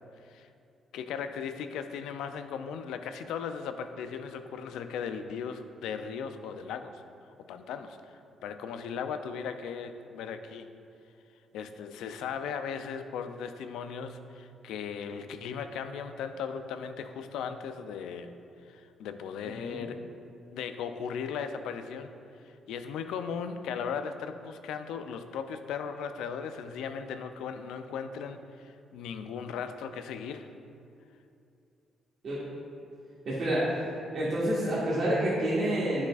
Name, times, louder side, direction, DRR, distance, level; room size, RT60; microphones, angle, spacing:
voice 1, 0.9-7.0 7.5-10.7 11.5-18.3 18.6-20.0 20.5-22.1 22.4-30.5, left 6 dB, 85° left, 9 dB, 0.3 m, -37 dB
voice 2, 33.2-33.7 34.1-36.1, right 1 dB, 60° right, -8 dB, 1.5 m, -28 dB
8.4 x 6.2 x 2.4 m, 2.6 s
cardioid pair, 90°, 0 cm